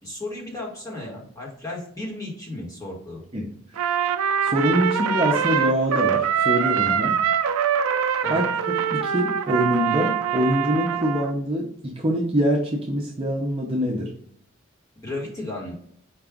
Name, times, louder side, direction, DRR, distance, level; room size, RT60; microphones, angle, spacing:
voice 1, 0.0-3.2 8.2-8.4 15.0-15.7, left 2 dB, 15° left, -4 dB, 1.2 m, -34 dB
Trumpet, 3.8-11.3, right 8 dB, 85° right, 0.4 m, -23 dB
voice 2, 4.4-7.2 8.3-8.5 8.9-14.1, equal, 25° right, -2 dB, 0.6 m, -24 dB
4.7 x 2.4 x 3.5 m, 0.67 s
head